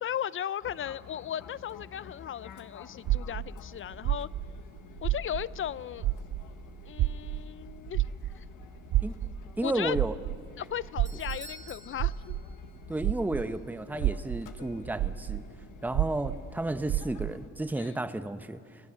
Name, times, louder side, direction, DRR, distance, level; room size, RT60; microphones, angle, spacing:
voice 1, 0.0-4.3 5.0-6.1 6.9-8.1 8.4-8.5 9.2-9.3 9.6-10.0 10.6-12.3 17.8-17.9, left 10 dB, 45° left, 19 dB, 0.5 m, -36 dB
Fixed-wing aircraft airplane, 0.6-17.5, left 7 dB, 85° left, 1.5 m, -50 dB
sound 1, 3.1-5.7 6.0-13.5 13.9-17.4, right 14 dB, 65° right, 0.5 m, -31 dB
voice 2, 9.6-10.2 12.9-15.4 15.8-18.6, right 2 dB, 5° right, 10 dB, 0.9 m, -32 dB
Doorbell, 10.6-13.1 13.4-13.5 14.2-14.3, right 1 dB, 25° right, 1.8 m, -50 dB
25.5 x 18.0 x 6.4 m, 2.2 s
cardioid pair, 90°, 30 cm